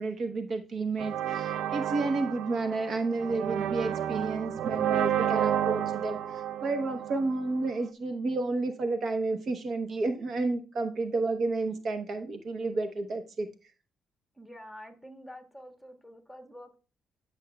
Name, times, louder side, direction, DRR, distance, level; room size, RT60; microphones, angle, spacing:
voice 1, 0.0-13.5, right 3 dB, 55° right, 0.9 m, -31 dB
sound 1, 1.0-7.7, right 10 dB, 75° right, 0.4 m, -31 dB
voice 2, 14.3-16.8, equal, ahead, 1.5 m, -47 dB
10.5 x 6.3 x 2.2 m
cardioid pair, 90°, 0 cm